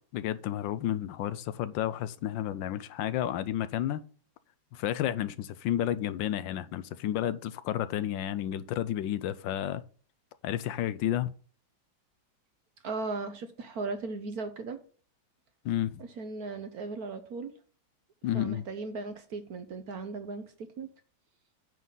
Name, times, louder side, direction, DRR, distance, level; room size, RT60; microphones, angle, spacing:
voice 1, 0.1-4.0 4.7-9.8 10.4-11.3 15.6-16.0 18.2-18.6, left 11 dB, 75° left, 1.3 m, -31 dB
voice 2, 12.8-14.8 16.0-17.5 18.3-20.4 20.8-20.9, right 3 dB, 60° right, 1.2 m, -37 dB
9.3 x 4.0 x 7.3 m
omnidirectional pair, 2.2 m